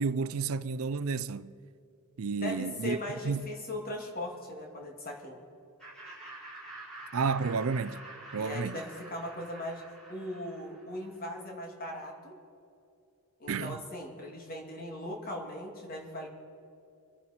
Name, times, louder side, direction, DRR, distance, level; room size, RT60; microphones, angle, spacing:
voice 1, 0.0-1.5 2.2-3.0 3.2-3.5 7.1-8.0 8.3-8.8 13.5-13.8, right 5 dB, 70° right, 0.5 m, -31 dB
voice 2, 2.3-5.4 8.3-9.8 10.1-12.4 13.4-16.3, left 1 dB, 45° left, 2.6 m, -39 dB
Laughter, 5.8-11.1, right 2 dB, ahead, 4.1 m, -47 dB
26.0 x 11.0 x 4.4 m
head